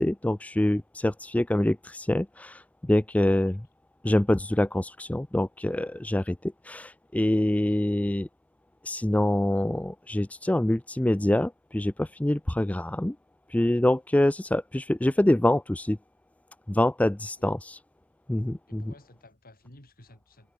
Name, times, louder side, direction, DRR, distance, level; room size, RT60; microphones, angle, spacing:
voice 1, 0.0-3.6 4.0-8.3 8.8-13.2 13.5-16.0 16.7-17.8 18.3-18.8, left 1 dB, 5° left, 0.4 m, -25 dB
voice 2, 3.2-3.6 7.6-7.8 17.4-17.5 18.7-20.5, left 1 dB, 40° left, 6.6 m, -54 dB
head